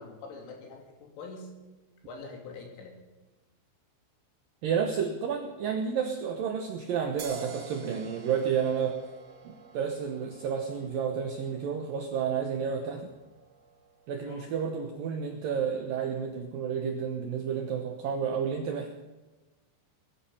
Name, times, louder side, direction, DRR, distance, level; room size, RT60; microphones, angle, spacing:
voice 1, 0.0-1.5 2.1-2.9 14.3-14.5, left 3 dB, 85° left, 2 dB, 5.3 m, -44 dB
voice 2, 4.6-9.0 9.4-13.1 14.1-18.9, right 7 dB, 75° right, 4 dB, 2.0 m, -31 dB
sound 1, 7.2-14.5, right 6 dB, 60° right, 1.7 m, -48 dB
20.5 x 12.0 x 5.6 m, 1.1 s
omnidirectional pair, 5.5 m